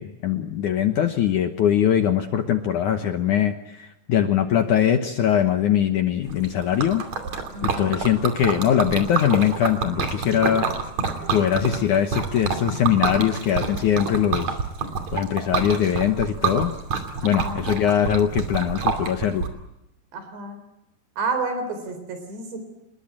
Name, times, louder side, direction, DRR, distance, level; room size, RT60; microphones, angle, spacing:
voice 1, 0.0-7.0 7.6-10.7 11.3-14.6 15.1-16.7 17.2-19.4, left 9 dB, 65° left, 7 dB, 2.0 m, -22 dB
Liquid, 6.3-19.5, right 5 dB, 45° right, 3.6 m, -28 dB
voice 2, 7.5-8.0 17.2-17.6 20.1-20.6 21.2-22.6, right 3 dB, 80° right, 8 dB, 6.1 m, -30 dB
26.5 x 21.0 x 8.8 m, 0.88 s
omnidirectional pair, 4.9 m